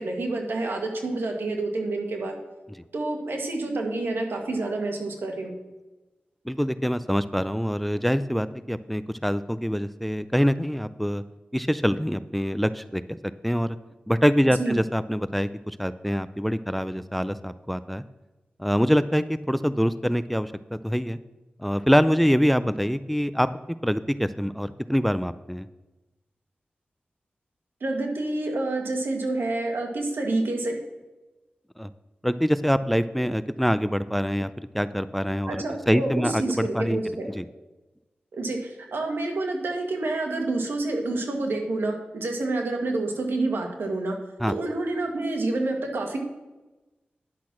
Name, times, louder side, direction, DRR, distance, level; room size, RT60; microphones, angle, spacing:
voice 1, 0.0-2.3 2.9-5.5 14.6-14.7 27.8-30.8 35.5-37.3 38.3-44.2 44.5-46.2, right 2 dB, 80° right, 2 dB, 1.7 m, -28 dB
voice 2, 6.5-11.2 11.5-13.2 13.4-13.8 14.1-18.0 18.6-21.2 21.6-23.5 23.8-25.7 31.8-31.9 32.2-37.0 37.3-37.5 44.4-44.5, equal, 5° left, 14 dB, 0.4 m, -25 dB
10.5 x 6.1 x 6.1 m, 1.1 s
wide cardioid pair, 65°, 4 cm